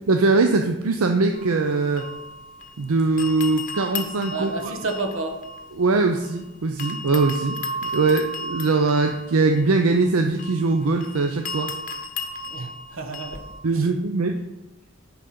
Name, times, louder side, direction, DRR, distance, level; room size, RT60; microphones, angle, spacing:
voice 1, 0.1-2.0 2.8-4.5 5.8-11.7 13.6-14.4, right 3 dB, 80° right, 5 dB, 0.6 m, -21 dB
sound 1, 1.3-2.8 3.2-6.4 6.8-13.6, left 1 dB, 35° left, 0.9 m, -35 dB
voice 2, 4.3-5.4 12.5-13.4 13.7-13.9, right 3 dB, 65° right, 5 dB, 1.2 m, -30 dB
9.9 x 4.0 x 5.9 m, 0.98 s
head